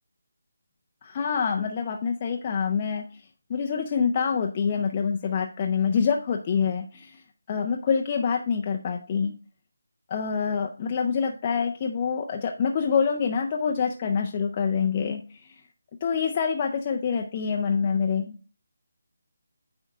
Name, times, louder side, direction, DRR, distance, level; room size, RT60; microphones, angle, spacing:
voice 1, 1.0-3.0 3.5-7.2 7.5-9.3 10.1-15.5 16.0-18.4, left 6 dB, 25° left, 2 dB, 0.5 m, -26 dB
9.3 x 3.5 x 3.6 m, 0.36 s
figure-of-eight pair, 165°, 0 cm